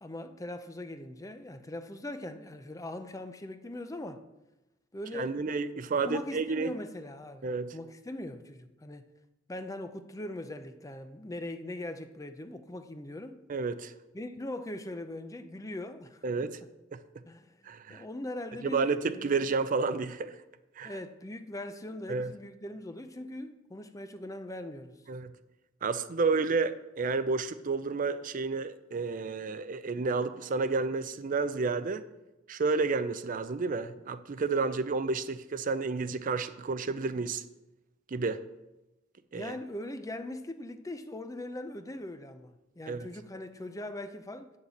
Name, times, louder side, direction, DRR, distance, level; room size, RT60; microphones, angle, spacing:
voice 1, 0.0-4.2 4.9-5.4 6.1-9.1 9.5-13.4 14.1-16.2 17.3-17.6 17.9-19.4 20.8-25.0 39.3-44.5, left 1 dB, 15° left, 0.6 m, -41 dB
voice 2, 5.1-6.7 7.4-7.7 13.5-13.9 16.2-16.6 16.9-17.0 17.7-18.0 18.6-20.4 20.8-20.9 22.1-22.3 25.1-25.3 25.8-32.0 32.5-37.4 38.1-38.4 39.3-39.5 42.9-43.1, right 4 dB, 45° right, 0.5 m, -30 dB
8.8 x 6.5 x 7.1 m
head